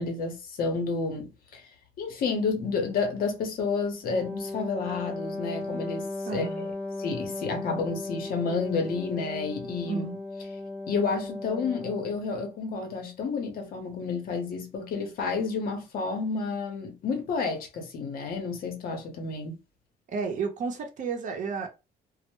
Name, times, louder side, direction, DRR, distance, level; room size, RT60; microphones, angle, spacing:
voice 1, 0.0-1.6 2.0-6.7 7.0-10.0 10.9-19.6, left 4 dB, 60° left, 0.8 m, -30 dB
Wind instrument woodwind instrument, 4.0-12.2, left 2 dB, 10° left, 0.3 m, -36 dB
voice 2, 6.3-6.7 9.9-10.2 20.1-21.7, right 5 dB, 50° right, 0.7 m, -32 dB
2.0 x 2.0 x 2.9 m
cardioid pair, 110°, 17 cm